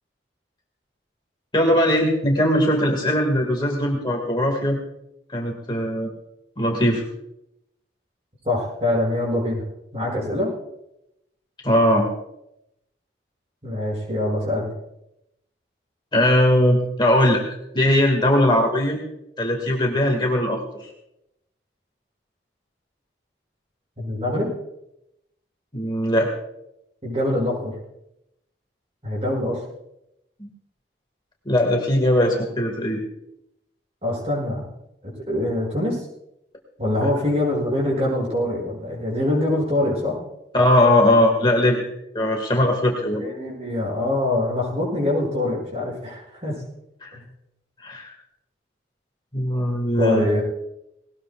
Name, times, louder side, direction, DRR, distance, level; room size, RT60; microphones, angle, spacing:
voice 1, 1.5-4.8 5.3-6.1 6.6-7.0 11.6-12.1 16.1-17.4 17.7-19.0 19.4-20.9 25.7-26.3 30.4-30.5 31.5-33.0 37.0-37.1 40.5-41.9 42.1-43.2 47.0-47.2 47.8-48.1 49.3-50.3, left 1 dB, 25° left, 0 dB, 2.2 m, -20 dB
voice 2, 8.4-9.6 9.9-10.5 13.6-14.7 24.0-24.5 27.0-27.7 29.0-29.6 34.0-34.7 35.0-36.0 36.8-40.2 43.2-46.6 47.1-47.2 50.0-50.4, left 1 dB, 35° right, -3 dB, 7.4 m, -24 dB
19.5 x 19.5 x 2.5 m, 0.84 s
head